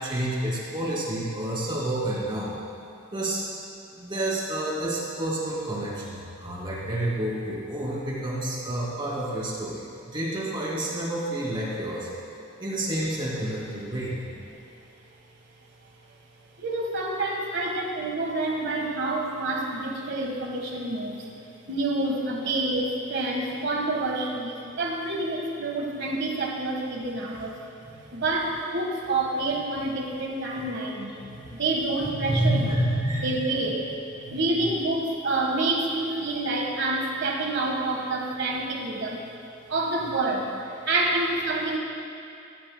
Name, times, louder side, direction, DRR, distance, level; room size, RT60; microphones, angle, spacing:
voice 1, 0.0-2.5 3.1-3.5 3.9-12.1 12.6-14.2 27.8-27.9 31.2-31.5 32.0-33.6 34.2-34.4, right 1 dB, 25° right, -5 dB, 2.6 m, -29 dB
voice 2, 16.6-21.3 21.7-27.6 28.1-31.2 31.5-32.7 33.2-33.9 34.3-39.3 39.7-41.8, right 2 dB, 60° right, 0 dB, 1.5 m, -28 dB
15.5 x 15.0 x 2.2 m, 2.6 s
head